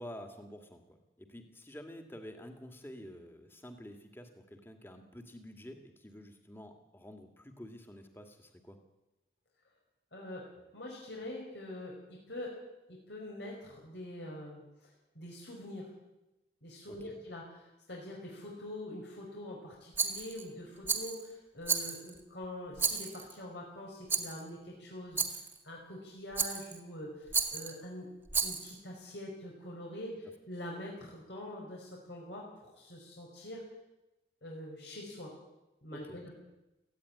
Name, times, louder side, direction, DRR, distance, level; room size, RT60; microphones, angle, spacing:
voice 1, 0.0-8.8 16.9-17.2 35.9-36.2, equal, 15° left, 5 dB, 2.1 m, -49 dB
voice 2, 10.1-12.5 12.9-14.9 15.2-15.9 16.6-28.1 28.4-33.6 34.4-35.3 35.8-36.4, left 1 dB, 80° left, -2 dB, 5.2 m, -45 dB
Rattle, 20.0-20.5 20.9-21.2 21.7-22.2 22.8-23.3 24.1-24.4 25.2-25.6 26.4-26.8 27.3-27.7 28.3-28.8, right 5 dB, 10° right, 1.8 m, -33 dB
18.0 x 15.5 x 9.9 m, 0.98 s
head